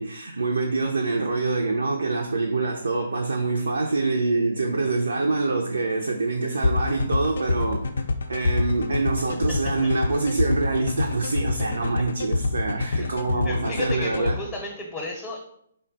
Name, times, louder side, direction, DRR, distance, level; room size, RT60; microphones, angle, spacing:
voice 1, 0.0-7.8 8.3-14.4, right 3 dB, 75° right, 2 dB, 0.4 m, -25 dB
sound 1, 6.6-14.3, left 3 dB, 70° left, 0.4 m, -25 dB
voice 2, 12.8-15.4, left 2 dB, 15° left, -1 dB, 0.7 m, -34 dB
3.7 x 2.1 x 3.9 m, 0.71 s
figure-of-eight pair, 130°, 0 cm